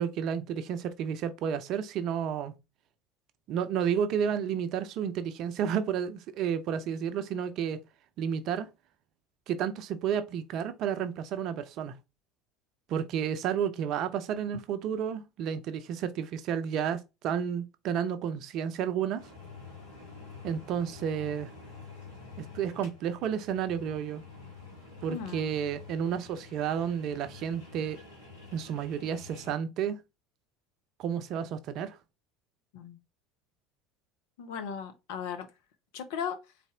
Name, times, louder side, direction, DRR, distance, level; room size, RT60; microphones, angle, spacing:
voice 1, 0.0-2.5 3.5-7.8 8.2-8.7 9.5-12.0 12.9-19.3 20.4-21.5 22.4-24.2 25.0-28.0 28.5-30.0 31.0-32.0, right 8 dB, 50° right, 0.6 m, -31 dB
sound 1, 19.2-29.5, left 4 dB, 80° left, 2.1 m, -48 dB
voice 2, 25.1-25.5 32.7-33.0 34.4-35.5 35.9-36.4, left 7 dB, 60° left, 0.7 m, -36 dB
4.1 x 3.4 x 3.6 m
figure-of-eight pair, 65°, 0 cm